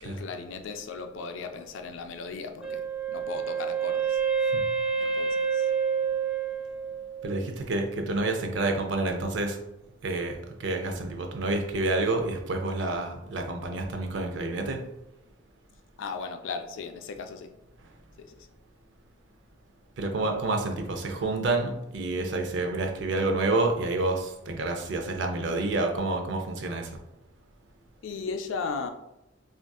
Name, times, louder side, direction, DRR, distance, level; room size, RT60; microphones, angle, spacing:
voice 1, 0.0-4.2 5.0-5.7 16.0-17.5 18.2-18.5 28.0-28.9, left 4 dB, 80° left, 6 dB, 0.4 m, -37 dB
Wind instrument woodwind instrument, 2.6-7.5, right 6 dB, 5° right, 0.3 m, -28 dB
voice 2, 7.2-9.6 10.0-14.8 20.0-27.0, right 2 dB, 70° right, 4 dB, 0.5 m, -28 dB
3.6 x 2.5 x 2.3 m, 0.89 s
head